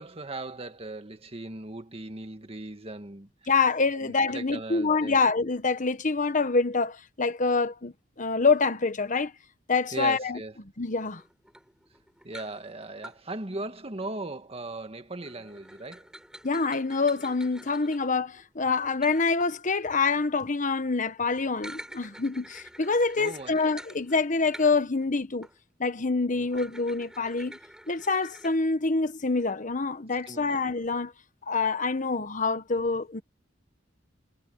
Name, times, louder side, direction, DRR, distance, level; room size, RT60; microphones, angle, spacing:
voice 1, 0.0-3.3 3.9-5.2 9.9-10.5 12.2-16.1 23.2-23.6 26.3-26.5 30.3-30.6, right 2 dB, 30° right, 1.8 m, -38 dB
voice 2, 3.5-9.3 9.7-10.4 10.8-11.2 16.4-25.5 25.8-27.6 27.9-31.1 31.5-33.2, left 4 dB, 40° left, 1.2 m, -26 dB
sound 1, 11.1-13.2 15.2-20.2 21.4-25.1 25.4-25.6 26.5-28.5, right 1 dB, 5° right, 4.6 m, -48 dB
head